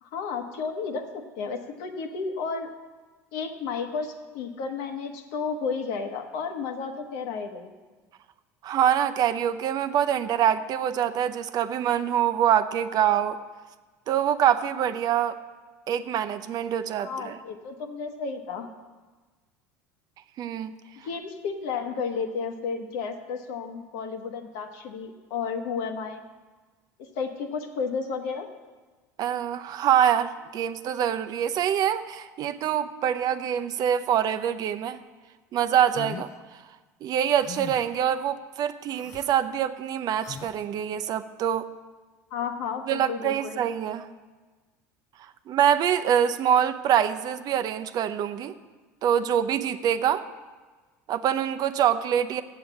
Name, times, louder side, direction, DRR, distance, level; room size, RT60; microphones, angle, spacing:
voice 1, 0.0-2.7 3.3-7.7 17.0-18.7 21.0-26.2 27.0-28.5 42.3-43.6, left 5 dB, 70° left, 5 dB, 1.2 m, -32 dB
voice 2, 8.6-13.4 14.1-15.4 15.9-17.4 20.4-20.7 29.2-35.0 35.5-36.3 37.0-41.7 42.9-44.1 45.5-48.5 49.0-50.2 51.1-52.4, right 9 dB, 50° right, 11 dB, 0.6 m, -25 dB
sound 1, 35.9-36.3 37.4-37.9 38.9-39.3 40.2-40.6, left 8 dB, 40° left, 0.6 m, -39 dB
7.9 x 7.4 x 8.0 m, 1.3 s
hypercardioid pair, 75°, 8 cm